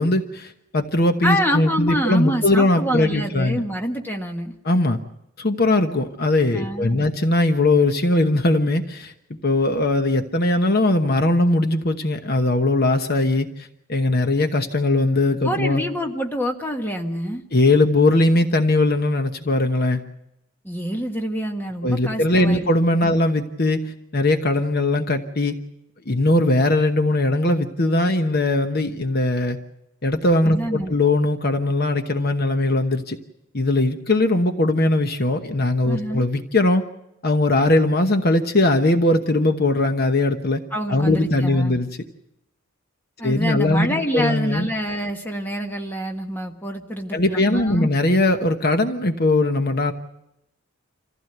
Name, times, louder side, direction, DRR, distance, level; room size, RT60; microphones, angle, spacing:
voice 1, 0.0-3.6 4.6-5.0 5.4-13.5 13.9-15.8 17.5-20.0 21.8-25.6 26.1-29.6 30.0-33.2 33.5-36.8 37.2-40.6 40.9-41.9 43.2-44.7 47.1-49.9, left 2 dB, 45° left, 6 dB, 1.1 m, -20 dB
voice 2, 1.2-4.5 6.5-7.1 15.4-17.4 20.6-22.7 23.0-23.1 30.4-30.9 35.9-36.2 40.7-41.8 43.2-47.9, equal, 10° left, 2 dB, 1.5 m, -26 dB
26.5 x 15.5 x 8.0 m, 0.85 s
head